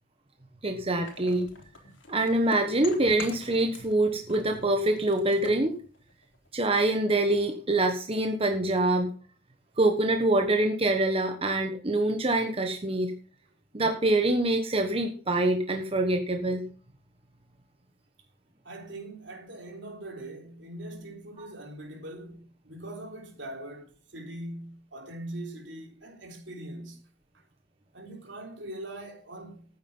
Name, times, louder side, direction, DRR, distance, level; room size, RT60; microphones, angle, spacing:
voice 1, 0.6-1.5 2.1-5.8 6.5-9.1 9.8-13.1 13.7-16.6, right 2 dB, 30° right, 1.2 m, -25 dB
sound 1, 1.0-4.0 4.3-6.6, left 3 dB, 80° left, 3.7 m, -45 dB
voice 2, 18.6-27.0 27.3-27.5 27.9-29.7, right 1 dB, 70° right, 3.6 m, -42 dB
13.5 x 9.4 x 5.5 m
head